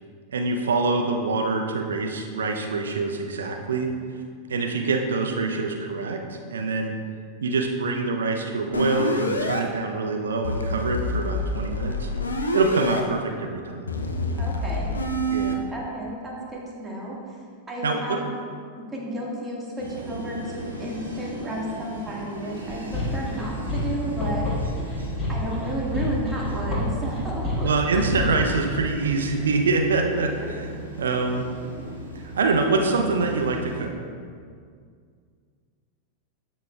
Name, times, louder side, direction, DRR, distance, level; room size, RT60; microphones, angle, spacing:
voice 1, 0.3-3.9 4.5-6.9 7.4-12.1 12.5-13.9 15.3-15.6 17.8-18.2 27.6-30.3 31.0-31.5 32.3-33.9, right 3 dB, 65° right, 3 dB, 0.6 m, -25 dB
sound 1, 8.7-9.6 10.4-13.0 13.9-15.5, left 1 dB, 75° left, 0.6 m, -27 dB
voice 2, 14.4-14.9 15.7-17.4 17.7-18.3 18.8-24.5 25.3-27.7, equal, 10° right, -4 dB, 1.7 m, -32 dB
sound 2, 19.8-33.8, right 1 dB, 85° right, 1.5 m, -37 dB
sound 3, 22.7-28.6, left 2 dB, 25° left, 1.7 m, -28 dB
12.5 x 5.1 x 2.3 m, 2.1 s
figure-of-eight pair, 90°, 0 cm